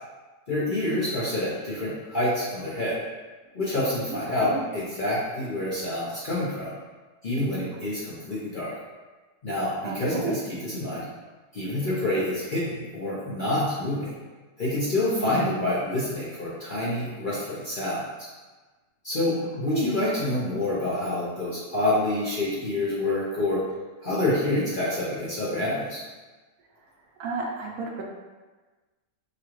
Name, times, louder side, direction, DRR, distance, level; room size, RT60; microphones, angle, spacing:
voice 1, 0.5-3.0 3.5-6.7 7.2-8.7 9.4-11.0 11.5-14.1 14.6-18.3 19.0-23.7 24.0-26.0, left 1 dB, 40° left, -8 dB, 0.7 m, -27 dB
voice 2, 4.1-4.6 9.8-10.4 15.1-15.7 19.7-20.0 27.2-28.0, right 3 dB, 70° right, -1 dB, 1.1 m, -32 dB
4.9 x 2.3 x 3.1 m, 1.3 s
omnidirectional pair, 1.7 m